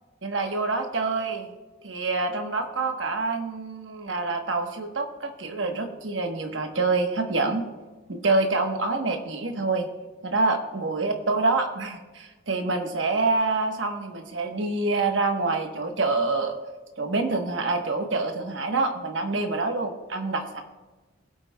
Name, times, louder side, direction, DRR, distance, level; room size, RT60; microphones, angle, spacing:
voice 1, 0.2-1.5 1.8-7.6 8.1-9.9 10.2-16.5 17.0-20.6, right 3 dB, 70° right, 4 dB, 1.2 m, -26 dB
23.0 x 8.3 x 2.3 m, 1.3 s
head